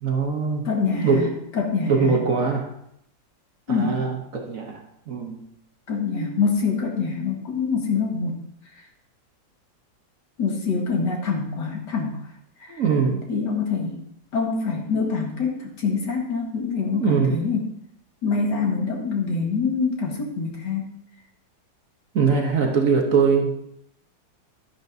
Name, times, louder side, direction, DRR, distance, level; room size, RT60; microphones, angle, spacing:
voice 1, 0.0-0.7 1.0-1.4 1.9-2.7 3.7-4.8 5.1-5.5 12.7-13.3 16.9-17.4 22.1-23.6, right 5 dB, 50° right, 2 dB, 1.2 m, -22 dB
voice 2, 0.7-1.2 1.5-2.1 3.7-4.0 5.9-8.4 10.4-12.2 12.6-12.8 13.3-14.0 14.3-17.7 18.2-20.9, left 5 dB, 65° left, 1 dB, 2.2 m, -25 dB
11.5 x 10.5 x 2.7 m, 0.75 s
omnidirectional pair, 2.0 m